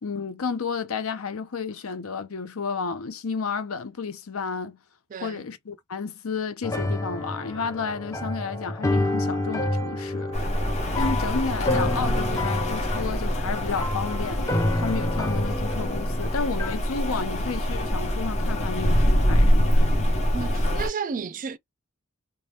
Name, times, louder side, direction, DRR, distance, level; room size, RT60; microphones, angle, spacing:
voice 1, 0.0-4.8 5.2-10.3 11.0-19.9, left 5 dB, 80° left, 0.7 m, -32 dB
voice 2, 5.1-5.5 20.3-21.6, right 6 dB, 40° right, 0.4 m, -32 dB
sound 1, 6.6-16.8, left 1 dB, 15° left, 0.6 m, -28 dB
Rain, 10.3-20.9, equal, 35° left, 1.0 m, -25 dB
2.7 x 2.2 x 3.4 m
head